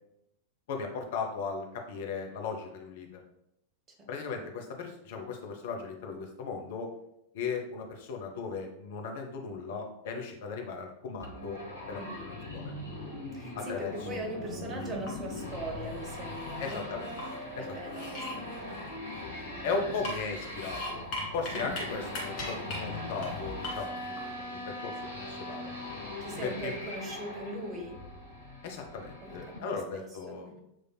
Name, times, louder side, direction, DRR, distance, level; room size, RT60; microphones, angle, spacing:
voice 1, 0.7-3.2 4.1-6.9 7.3-12.0 12.5-12.7 13.6-14.3 16.6-17.1 17.6-17.9 19.6-21.0 21.3-25.7 26.4-26.8 28.6-30.5, left 4 dB, 55° left, 3 dB, 0.7 m, -37 dB
sound 1, 11.2-29.6, left 1 dB, 85° left, 1.0 m, -40 dB
voice 2, 12.0-12.3 13.3-16.8 17.6-18.8 19.1-19.3 21.5-21.8 26.2-28.0 29.2-29.4 29.9-30.6, right 1 dB, 25° right, 2 dB, 1.0 m, -41 dB
sound 2, 14.8-15.4 15.9-17.4 17.8-19.5 19.9-21.8 22.1-22.8 23.2-23.3 23.6-24.2, left 1 dB, 40° left, 1.7 m, -40 dB
7.4 x 3.2 x 2.2 m, 0.81 s
figure-of-eight pair, 90°, 0 cm